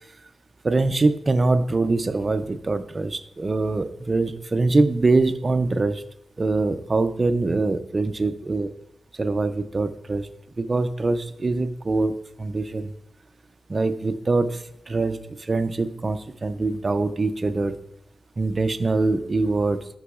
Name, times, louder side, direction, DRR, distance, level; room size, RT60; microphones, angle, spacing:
voice 1, 0.6-6.0 6.4-8.7 9.2-10.3 10.6-13.0 13.7-17.8 18.4-19.9, right 3 dB, 30° right, 10 dB, 0.4 m, -23 dB
11.0 x 6.1 x 2.4 m, 0.77 s
wide cardioid pair, 155°, 0 cm